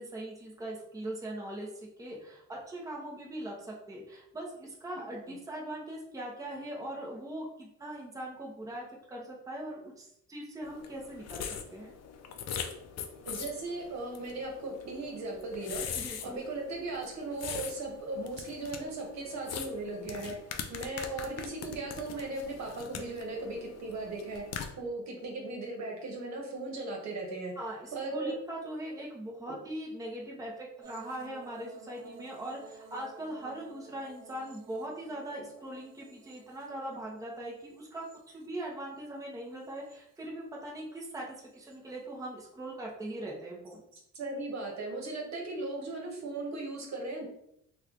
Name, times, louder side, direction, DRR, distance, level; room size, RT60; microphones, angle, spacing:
voice 1, 0.0-11.9 15.9-16.4 27.6-43.8, right 1 dB, 10° right, -3 dB, 0.8 m, -41 dB
sound 1, 10.6-24.7, left 7 dB, 60° left, 0.5 m, -42 dB
voice 2, 13.2-15.8 16.2-20.3 20.7-24.4 24.8-27.5 27.9-28.3 29.5-29.6 44.1-47.3, right 2 dB, 65° right, 0 dB, 1.1 m, -37 dB
sound 2, 30.8-39.0 39.4-40.2 41.5-41.8, right 5 dB, 85° right, 0.5 m, -54 dB
3.0 x 2.4 x 3.7 m, 0.75 s
cardioid pair, 90°, 30 cm